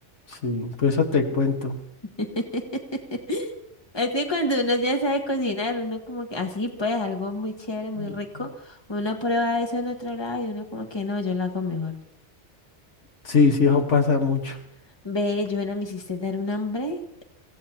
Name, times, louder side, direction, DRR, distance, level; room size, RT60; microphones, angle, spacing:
voice 1, 0.4-1.8 8.0-8.1 13.3-14.6, left 4 dB, 75° left, 3 dB, 1.8 m, -21 dB
voice 2, 2.2-3.5 3.9-11.9 15.0-17.0, left 2 dB, 20° left, 3 dB, 1.6 m, -27 dB
25.5 x 16.5 x 2.9 m, 0.75 s
omnidirectional pair, 1.2 m